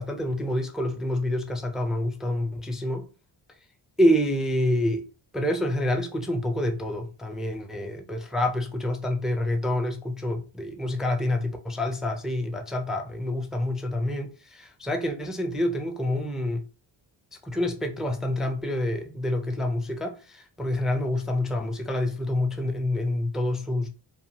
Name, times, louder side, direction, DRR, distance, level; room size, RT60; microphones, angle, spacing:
voice 1, 0.0-3.1 4.0-5.0 5.3-16.6 17.4-23.9, left 1 dB, ahead, 0.3 m, -27 dB
2.7 x 2.3 x 2.7 m
cardioid pair, 100°, 44 cm